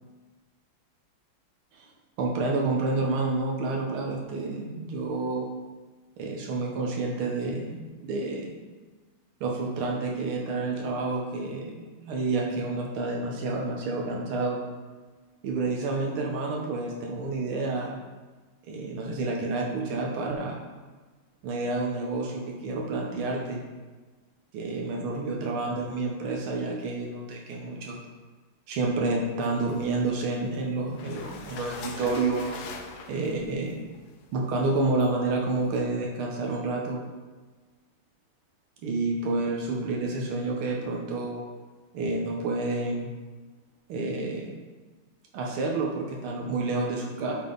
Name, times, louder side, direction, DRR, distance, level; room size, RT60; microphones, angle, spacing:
voice 1, 2.2-5.5 6.2-8.5 9.4-14.6 15.4-18.0 18.7-20.6 21.4-23.6 24.5-28.0 28.7-32.5 33.1-33.8 34.3-37.0 38.8-41.4 41.9-43.1 43.9-44.6 45.3-47.3, right 3 dB, 85° right, -1 dB, 1.7 m, -29 dB
sound 1, 29.4-30.5 30.9-35.8, left 5 dB, 65° left, 1.0 m, -44 dB
9.5 x 3.7 x 3.8 m, 1.3 s
omnidirectional pair, 2.3 m